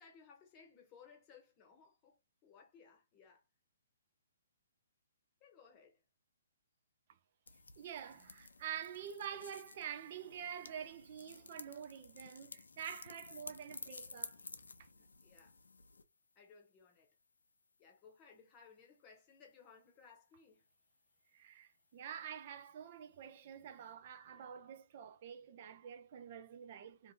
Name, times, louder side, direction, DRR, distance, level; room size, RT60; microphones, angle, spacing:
voice 1, 0.0-3.4 5.4-6.0 14.9-15.6 16.4-17.1 17.8-20.6 22.9-23.0 24.3-24.5, left 6 dB, 25° left, 0.9 m, -62 dB
sound 1, 7.5-16.0, left 4 dB, 75° left, 0.4 m, -53 dB
voice 2, 7.8-14.4 14.8-14.9 21.3-27.1, right 9 dB, 45° right, 0.5 m, -47 dB
2.6 x 2.5 x 2.6 m
figure-of-eight pair, 130°, 0 cm